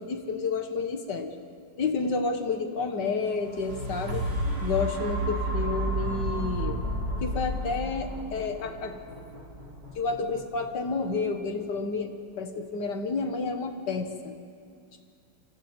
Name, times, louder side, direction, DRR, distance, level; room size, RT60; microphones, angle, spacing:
voice 1, 0.0-1.3 1.8-4.2 4.6-6.8 7.2-9.0 9.9-14.4, left 4 dB, 60° left, 6 dB, 2.1 m, -30 dB
sound 1, 3.3-11.4 11.9-12.0, right 1 dB, 60° right, 4.2 m, -32 dB
28.0 x 25.5 x 4.5 m, 2.3 s
omnidirectional pair, 2.1 m